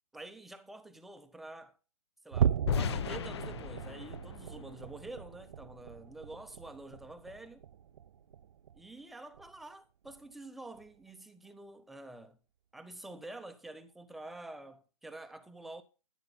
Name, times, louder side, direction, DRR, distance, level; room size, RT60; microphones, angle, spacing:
voice 1, 0.1-1.8 2.2-7.7 8.7-12.4 12.7-15.8, right 2 dB, ahead, 0.6 m, -48 dB
sound 1, 2.3-9.0 9.3-9.6 10.0-10.2 10.7-10.9, right 9 dB, 60° right, 0.5 m, -37 dB
sound 2, 2.7-5.6, left 9 dB, 45° left, 0.6 m, -37 dB
12.5 x 11.0 x 4.0 m
hypercardioid pair, 165°, 19 cm